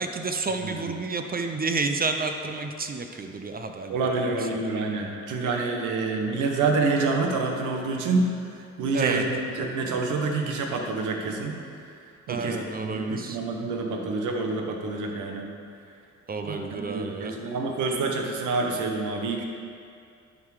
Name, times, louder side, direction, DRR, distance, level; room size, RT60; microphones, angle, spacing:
voice 1, 0.0-4.0 4.4-4.6 8.9-9.2 12.3-13.4 16.3-17.3, right 3 dB, 30° right, 5 dB, 0.5 m, -30 dB
voice 2, 0.6-0.9 3.9-8.3 8.8-11.6 12.3-15.5 16.4-19.4, right 3 dB, 80° right, 2 dB, 1.1 m, -27 dB
11.0 x 3.7 x 4.9 m, 2.5 s
cardioid pair, 90°, 30 cm